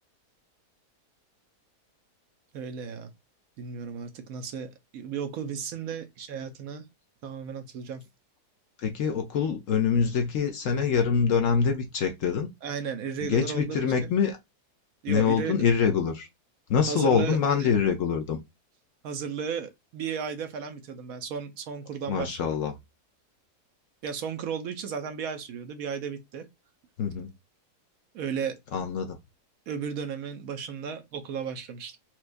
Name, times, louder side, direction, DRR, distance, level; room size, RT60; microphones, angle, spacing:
voice 1, 2.5-3.1 3.6-6.8 7.2-8.0 12.6-14.1 15.0-15.7 16.8-17.7 19.0-22.4 24.0-26.5 28.1-28.6 29.7-32.0, right 7 dB, 70° right, 1.0 m, -34 dB
voice 2, 8.8-12.5 13.2-14.4 15.1-16.3 16.7-18.4 22.1-22.7 27.0-27.3 28.7-29.2, left 6 dB, 65° left, 0.8 m, -25 dB
4.4 x 2.3 x 2.5 m
omnidirectional pair, 1.7 m